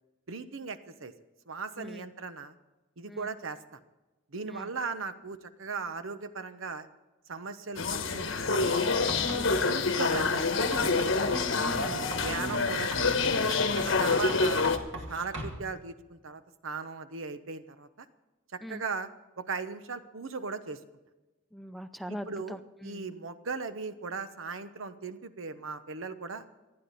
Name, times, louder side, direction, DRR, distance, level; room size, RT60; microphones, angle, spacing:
voice 1, 0.3-1.1 1.5-2.6 3.0-3.8 4.3-6.9 7.3-8.5 9.6-11.0 11.8-13.5 13.8-14.6 15.1-18.1 18.7-19.1 19.4-20.8 22.1-26.4, right 4 dB, 85° right, 11 dB, 1.0 m, -38 dB
sound 1, 7.8-14.8, left 4 dB, 75° left, 1.2 m, -27 dB
Writing, 8.5-11.2 11.6-14.0 14.3-15.7, right 1 dB, 65° right, 2.2 m, -42 dB
voice 2, 9.2-9.8 11.5-12.1 14.1-14.4 18.6-18.8 21.5-23.1, equal, ahead, 9 dB, 0.6 m, -42 dB
27.0 x 9.8 x 4.2 m, 1.1 s
head